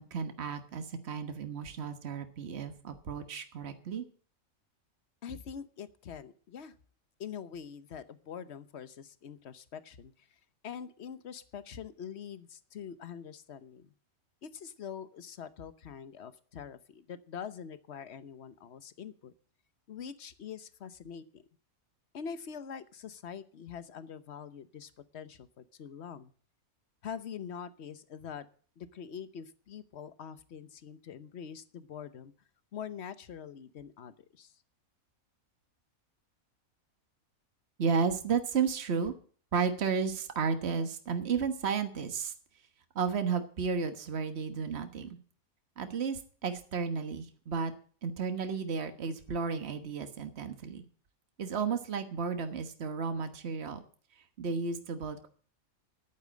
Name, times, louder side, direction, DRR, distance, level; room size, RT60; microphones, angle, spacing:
voice 1, 0.0-4.0 37.8-39.1 39.5-42.3 42.9-45.2 45.8-47.7 48.0-50.8 51.4-53.8 54.4-55.3, right 5 dB, 50° right, 7 dB, 1.6 m, -33 dB
voice 2, 5.2-6.7 7.2-10.3 10.6-13.9 14.4-19.3 19.9-21.4 22.1-26.3 27.0-28.5 28.8-32.3 32.7-34.5, left 7 dB, 55° left, 13 dB, 1.2 m, -44 dB
11.5 x 9.2 x 7.4 m, 0.43 s
omnidirectional pair, 1.5 m